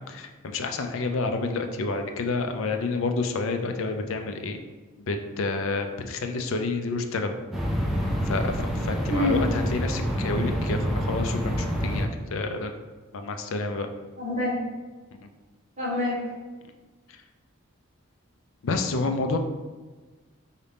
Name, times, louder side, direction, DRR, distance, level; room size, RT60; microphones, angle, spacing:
voice 1, 0.0-4.6 5.1-7.3 8.3-12.7 13.1-13.9 15.1-15.2 18.6-19.4, left 3 dB, 75° left, 6 dB, 0.5 m, -29 dB
sound 1, 7.5-12.0, equal, ahead, 0.4 m, -27 dB
voice 2, 14.2-14.5 15.8-16.2, left 1 dB, 35° right, -7 dB, 1.4 m, -26 dB
4.8 x 2.8 x 3.4 m, 1.3 s
head